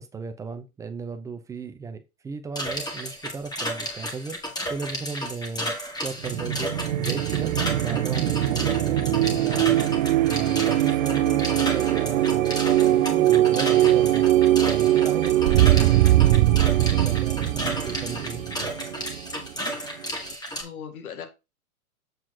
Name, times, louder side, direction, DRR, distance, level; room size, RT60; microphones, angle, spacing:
voice 1, 0.0-5.7 6.0-7.5 7.8-9.9 10.3-14.3 14.7-16.0 16.4-18.7, right 5 dB, 5° right, 0.5 m, -36 dB
sound 1, 2.6-20.6, equal, 10° left, 1.8 m, -33 dB
sound 2, 6.2-19.7, right 13 dB, 60° right, 0.6 m, -21 dB
voice 2, 19.7-20.2 20.6-21.3, left 8 dB, 70° left, 2.2 m, -40 dB
7.8 x 4.4 x 4.3 m
hypercardioid pair, 115°, 44 cm